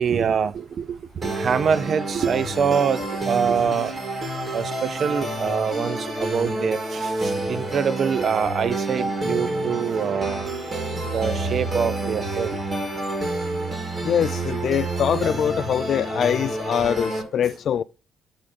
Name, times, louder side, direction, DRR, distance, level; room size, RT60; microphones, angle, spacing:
voice 1, 0.0-4.0 4.5-10.5 11.1-12.6 15.1-15.2, right 6 dB, 50° right, 0.5 m, -25 dB
sound 1, 1.2-17.2, right 2 dB, 30° right, 2.2 m, -28 dB
voice 2, 14.0-17.8, left 9 dB, 60° left, 0.3 m, -23 dB
8.6 x 3.6 x 5.2 m
cardioid pair, 100°, 0 cm